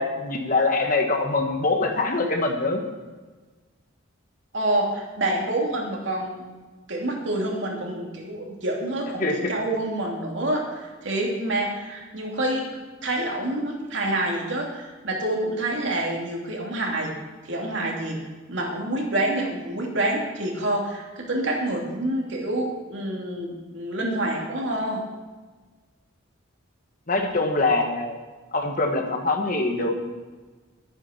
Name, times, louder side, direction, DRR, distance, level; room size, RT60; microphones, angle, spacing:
voice 1, 0.0-2.8 9.2-9.5 27.1-28.2 28.5-30.1, left 3 dB, 40° left, 3 dB, 1.6 m, -24 dB
voice 2, 4.5-6.4 6.9-17.1 17.4-18.2 18.5-25.0, right 1 dB, 60° right, -1 dB, 2.9 m, -27 dB
12.0 x 9.9 x 5.9 m, 1.3 s
head